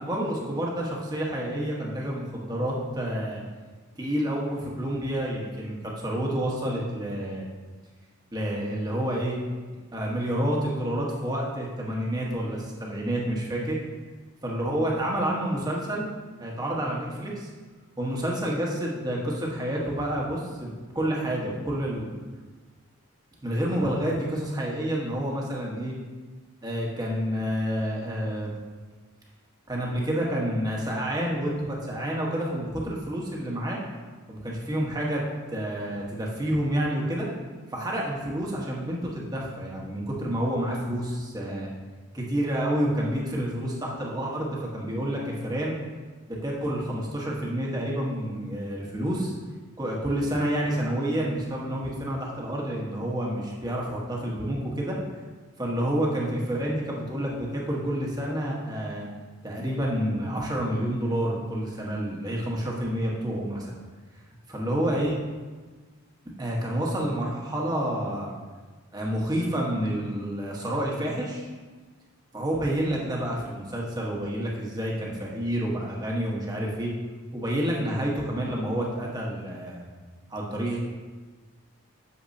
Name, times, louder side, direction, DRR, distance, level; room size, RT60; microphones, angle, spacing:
voice 1, 0.0-3.4 4.0-7.4 8.3-9.4 9.9-13.8 14.4-16.1 16.4-17.5 18.0-22.1 23.4-25.9 26.6-28.5 29.7-33.8 34.3-35.2 35.5-37.3 37.7-41.7 42.1-45.7 46.3-49.3 49.8-55.0 55.6-59.1 59.4-63.7 64.5-65.1 66.4-68.3 68.9-71.5 72.3-76.9 77.3-79.8 80.3-80.8, right 1 dB, 20° right, -3 dB, 1.2 m, -29 dB
8.3 x 7.0 x 2.7 m, 1.3 s
head